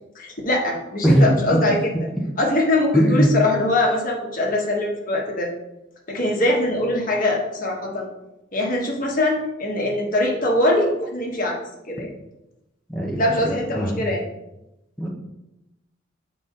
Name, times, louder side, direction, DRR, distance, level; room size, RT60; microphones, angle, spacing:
voice 1, 0.1-1.9 2.4-5.5 6.1-8.1 8.5-11.6 11.9-12.1 13.2-14.2, left 1 dB, 45° left, -1 dB, 1.3 m, -22 dB
voice 2, 1.0-1.6 2.9-3.3 12.9-14.0 15.0-15.1, equal, 5° left, -4 dB, 0.8 m, -20 dB
8.3 x 4.1 x 3.8 m, 0.92 s
head